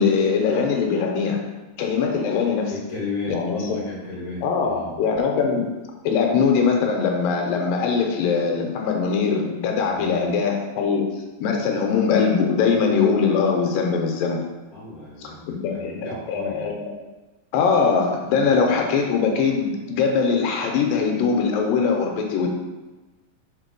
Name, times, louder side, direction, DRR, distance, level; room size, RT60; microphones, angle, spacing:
voice 1, 0.0-1.4 1.8-2.7 3.3-3.8 4.4-5.7 6.0-11.1 11.4-14.4 15.5-16.9 17.5-22.5, left 5 dB, 85° left, 1 dB, 2.6 m, -21 dB
voice 2, 2.7-5.0 9.9-10.4 14.7-16.7, left 2 dB, 30° left, -5 dB, 1.8 m, -34 dB
4.8 x 4.8 x 5.2 m, 1.1 s
omnidirectional pair, 3.9 m